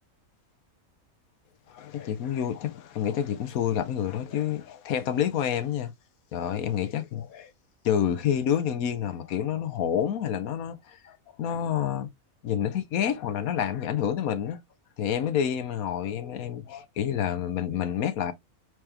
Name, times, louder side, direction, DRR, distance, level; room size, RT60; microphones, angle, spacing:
voice 1, 1.7-5.9 6.3-7.5 7.8-12.1 12.4-14.6 15.0-18.3, left 9 dB, 85° left, 1.2 m, -28 dB
4.7 x 3.1 x 3.3 m
omnidirectional pair, 1.5 m